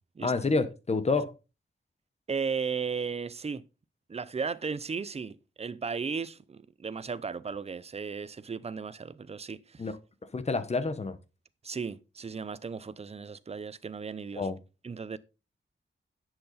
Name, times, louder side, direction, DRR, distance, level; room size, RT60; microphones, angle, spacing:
voice 1, 0.2-1.3 9.8-10.0 10.3-11.2 14.3-14.6, left 3 dB, 35° left, 1.0 m, -28 dB
voice 2, 2.3-3.6 4.1-9.9 11.6-14.5 14.8-15.2, right 5 dB, 30° right, 0.6 m, -35 dB
10.5 x 8.0 x 4.1 m
wide cardioid pair, 160°, 20 cm